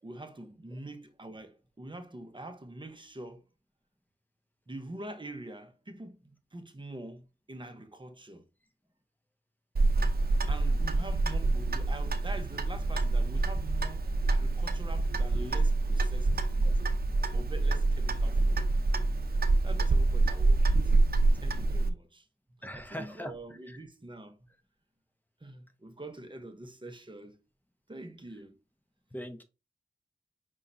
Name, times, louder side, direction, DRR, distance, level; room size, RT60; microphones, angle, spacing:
voice 1, 0.0-3.4 4.7-8.5 10.5-16.8 17.3-18.7 19.6-20.9 21.4-22.3 22.7-24.4 25.4-27.4 27.9-28.6, right 2 dB, 25° right, 0.9 m, -45 dB
Clock, 9.8-21.9, right 2 dB, 60° right, 0.7 m, -26 dB
voice 2, 22.6-23.3 23.7-23.8 29.1-29.4, equal, 10° left, 0.9 m, -41 dB
5.4 x 3.7 x 2.6 m
wide cardioid pair, 80°, 18 cm